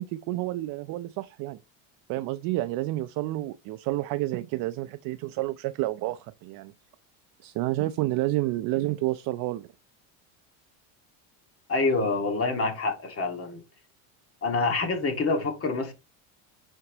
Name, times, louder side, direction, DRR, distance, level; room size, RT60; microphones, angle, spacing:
voice 1, 0.0-1.6 2.1-6.7 7.4-9.7, right 17 dB, 50° right, 0.6 m, -29 dB
voice 2, 11.7-13.6 14.4-15.9, left 3 dB, 30° left, 2.0 m, -26 dB
9.5 x 4.6 x 2.9 m
supercardioid pair, 120°, 43 cm